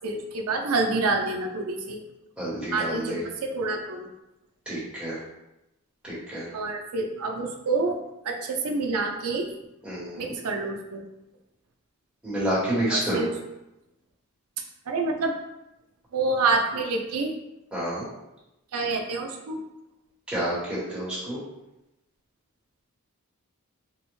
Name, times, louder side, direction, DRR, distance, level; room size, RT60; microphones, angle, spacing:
voice 1, 0.0-2.0 2.7-4.1 6.5-8.0 8.2-9.5 10.2-11.0 12.9-13.3 14.9-15.3 16.1-17.3 18.7-19.6, right 3 dB, 80° right, 2 dB, 0.5 m, -27 dB
voice 2, 2.4-3.2 4.7-5.2 6.0-6.4 9.8-10.3 12.2-13.3 17.7-18.0 20.3-21.4, right 1 dB, 5° right, -9 dB, 1.0 m, -29 dB
3.4 x 2.1 x 3.0 m, 0.92 s
head